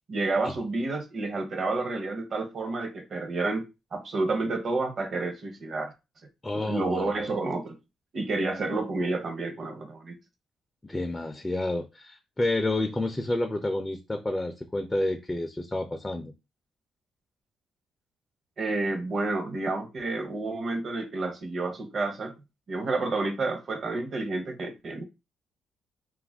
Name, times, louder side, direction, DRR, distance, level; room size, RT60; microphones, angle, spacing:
voice 1, 0.1-3.6 3.9-5.9 6.5-7.7 8.1-10.2 18.6-22.3 22.7-25.0, right 3 dB, 50° right, 0.7 m, -30 dB
voice 2, 6.4-7.1 10.9-16.3, left 2 dB, 15° left, 0.4 m, -29 dB
2.4 x 2.1 x 3.4 m
cardioid pair, 90°, 0 cm